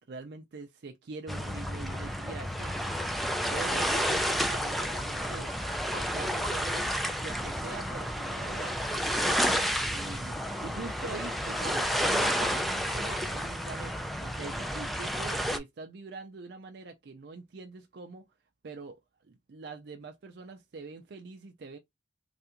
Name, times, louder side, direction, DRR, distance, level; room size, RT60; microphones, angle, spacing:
voice 1, 0.0-2.7 3.5-18.2 18.6-19.0 19.2-21.8, right 3 dB, 65° right, 0.5 m, -44 dB
sound 1, 1.3-15.6, equal, ahead, 0.3 m, -31 dB
3.4 x 2.4 x 2.8 m
head